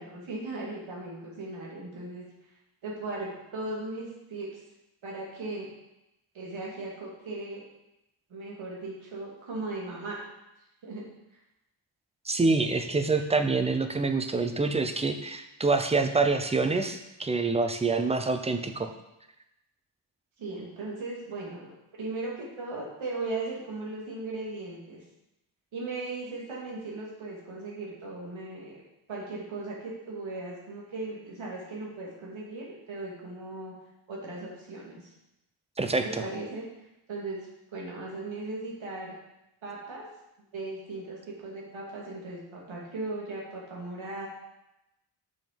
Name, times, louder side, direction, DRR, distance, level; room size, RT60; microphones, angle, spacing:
voice 1, 0.0-2.2 2.8-4.5 5.0-5.7 6.3-7.6 8.3-10.2 10.8-11.0 20.4-25.0 25.7-28.8 29.1-33.7 34.1-35.1 36.0-36.7 37.1-39.1 39.6-40.1 40.5-44.3, right 2 dB, 80° right, -4 dB, 2.6 m, -37 dB
voice 2, 12.3-18.9 35.8-36.2, right 3 dB, 15° right, 7 dB, 0.5 m, -26 dB
6.4 x 6.3 x 5.1 m, 0.89 s
wide cardioid pair, 170°, 47 cm